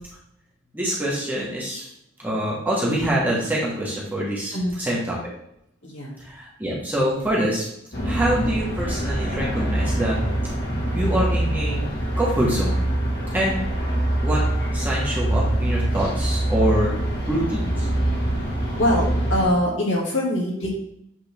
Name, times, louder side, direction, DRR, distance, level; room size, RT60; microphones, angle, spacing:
voice 1, 0.7-1.9 2.2-4.5 4.8-5.2 6.2-7.6 8.0-10.2 10.9-11.8 12.2-12.7 13.3-13.6 14.2-14.4 14.7-17.9, right 1 dB, 10° right, -6 dB, 1.5 m, -25 dB
voice 2, 5.8-6.2 18.8-20.7, left 1 dB, 70° left, -5 dB, 2.7 m, -23 dB
sound 1, 7.9-19.4, right 1 dB, 55° left, 2.0 m, -24 dB
8.1 x 3.8 x 3.6 m, 0.76 s
head